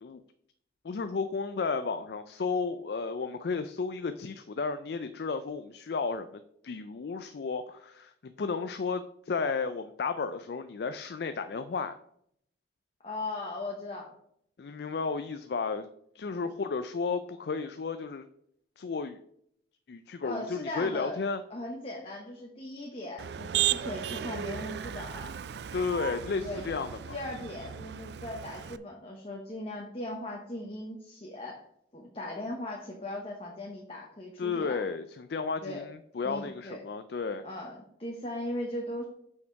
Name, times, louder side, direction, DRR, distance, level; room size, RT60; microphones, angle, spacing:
voice 1, 0.8-12.0 14.6-15.9 16.1-18.3 18.8-19.2 19.9-21.4 25.7-27.2 34.4-37.4, left 4 dB, 60° left, 10 dB, 0.4 m, -33 dB
voice 2, 13.0-14.1 16.2-16.4 20.2-21.2 21.5-25.3 26.4-26.6 27.1-31.6 31.9-34.8 35.6-35.8 36.2-36.8 37.4-39.0, left 1 dB, 30° left, -1 dB, 1.0 m, -38 dB
Motor vehicle (road), 23.2-28.8, right 10 dB, 65° right, 0.3 m, -35 dB
6.5 x 5.7 x 4.6 m, 0.71 s
head